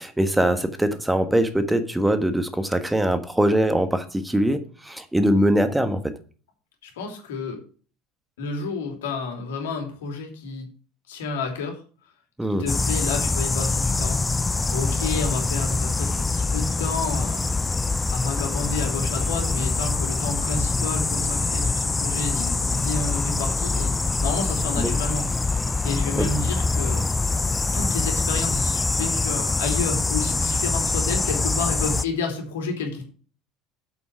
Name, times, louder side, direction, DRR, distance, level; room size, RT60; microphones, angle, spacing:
voice 1, 0.0-6.1 12.4-12.6 24.8-24.9 26.2-26.3, right 1 dB, 5° right, 9 dB, 1.5 m, -22 dB
voice 2, 6.8-7.6 8.4-10.6 11.1-11.8 12.6-17.5 18.1-23.9 24.2-27.0 27.7-33.0, left 4 dB, 70° left, 3 dB, 3.0 m, -30 dB
sound 1, 12.7-32.1, left 3 dB, 15° left, 0.5 m, -24 dB
8.1 x 8.0 x 4.8 m, 0.39 s
figure-of-eight pair, 65°, 0 cm